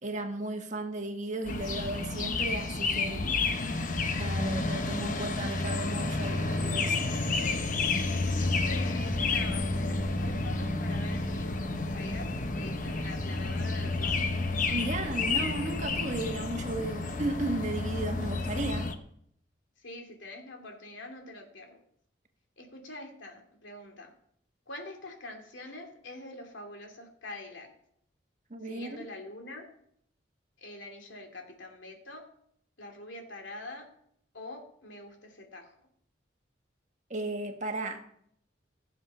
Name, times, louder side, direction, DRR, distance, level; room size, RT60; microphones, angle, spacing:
voice 1, 0.0-3.3 4.2-7.3 14.7-18.9 28.5-29.1 37.1-38.0, right 2 dB, 40° right, 1.5 m, -35 dB
sound 1, 1.5-19.0, left 3 dB, 45° left, 1.0 m, -30 dB
voice 2, 8.4-11.7 11.9-14.2 19.8-21.8 22.6-24.1 24.7-27.7 28.6-29.7 30.6-32.2 32.8-33.9 34.3-35.7, left 2 dB, 80° left, 2.6 m, -44 dB
15.5 x 7.5 x 5.7 m
head